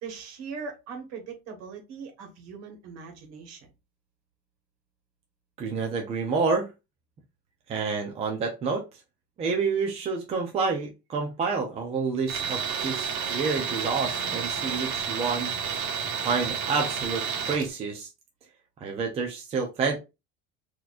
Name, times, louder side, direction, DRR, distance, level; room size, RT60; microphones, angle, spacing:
voice 1, 0.0-3.7, right 5 dB, 55° right, 1.4 m, -40 dB
voice 2, 5.6-6.7 7.7-8.8 9.4-15.5 16.0-18.1 18.8-20.0, right 4 dB, 20° right, 0.5 m, -29 dB
Tools, 12.3-17.7, right 7 dB, 75° right, 1.3 m, -30 dB
4.1 x 2.9 x 2.5 m
cardioid pair, 170°, 31 cm